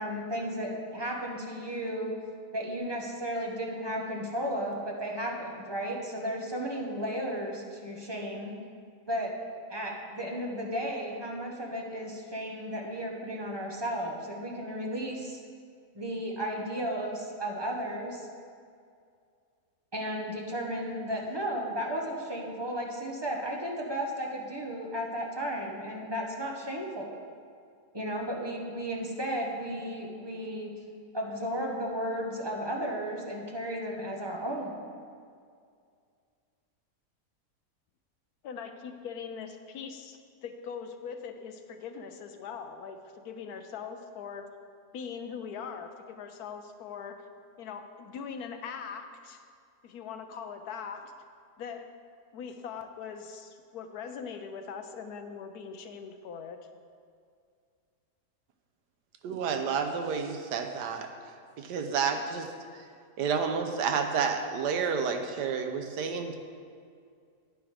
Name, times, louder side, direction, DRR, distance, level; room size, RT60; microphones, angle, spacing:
voice 1, 0.0-2.1 2.5-8.5 9.1-9.3 9.7-15.4 15.9-18.3 19.9-27.1 27.9-30.7 31.1-34.9, equal, 20° right, -1 dB, 0.8 m, -34 dB
voice 2, 38.4-44.5 44.9-47.2 47.6-49.4 49.8-51.1 51.6-51.9 52.3-56.7, left 6 dB, 75° left, 7 dB, 1.1 m, -41 dB
voice 3, 59.2-61.1 61.6-62.8 63.2-66.4, right 6 dB, 80° right, 5 dB, 1.3 m, -30 dB
10.0 x 9.7 x 3.3 m, 2.2 s
omnidirectional pair, 1.8 m